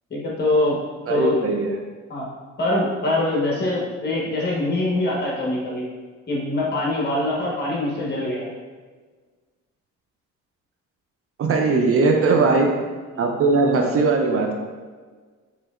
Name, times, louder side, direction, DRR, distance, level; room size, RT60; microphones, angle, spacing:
voice 1, 0.1-0.8 1.1-1.3 2.1-2.3 2.6-5.8 6.3-8.5 12.4-12.6 13.1-13.3 13.8-13.9, left 1 dB, 35° left, -4 dB, 1.2 m, -24 dB
voice 2, 1.1-1.8 11.4-12.8 13.2-14.6, right 3 dB, 50° right, 3 dB, 0.5 m, -19 dB
4.8 x 2.9 x 2.4 m, 1.5 s
cardioid pair, 90°, 30 cm